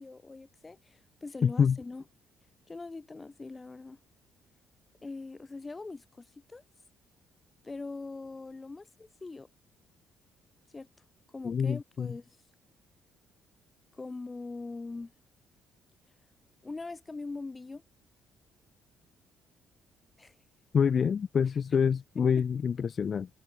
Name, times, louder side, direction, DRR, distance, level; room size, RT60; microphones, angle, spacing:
voice 1, 0.0-2.1 2.7-4.0 5.0-6.6 7.6-9.5 10.7-10.9 11.3-12.4 13.9-15.1 16.6-17.8 20.2-20.4 21.7-21.8 22.4-22.5, left 3 dB, 20° left, 3.7 m, -42 dB
voice 2, 1.4-1.8 11.4-12.1 20.7-23.3, left 7 dB, 40° left, 0.8 m, -26 dB
cardioid pair, 135°, 0 cm